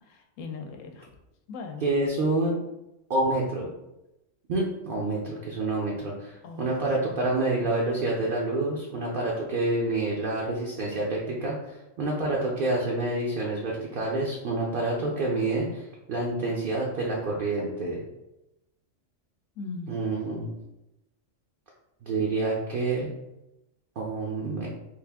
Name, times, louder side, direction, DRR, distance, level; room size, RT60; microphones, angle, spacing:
voice 1, 0.1-1.1 1.5-1.8 6.4-6.8 19.6-19.9, left 4 dB, 80° left, 5 dB, 0.9 m, -38 dB
voice 2, 1.8-2.6 3.1-3.7 4.5-18.0 19.9-20.5 22.0-23.1 24.0-24.7, right 2 dB, 55° right, -3 dB, 0.6 m, -28 dB
3.3 x 2.5 x 3.4 m, 0.93 s
omnidirectional pair, 1.3 m